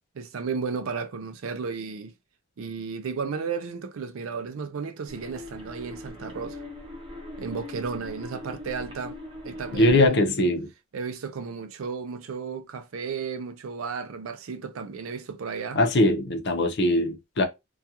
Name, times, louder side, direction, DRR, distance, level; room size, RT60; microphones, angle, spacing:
voice 1, 0.2-2.1 2.6-6.6 7.4-9.2 9.4-10.1 10.9-15.8, right 5 dB, 90° right, 0.5 m, -33 dB
sound 1, 5.1-10.1, left 1 dB, 25° right, 0.7 m, -40 dB
voice 2, 9.7-10.7 15.7-17.4, left 1 dB, 55° left, 0.6 m, -21 dB
2.4 x 2.3 x 2.8 m
head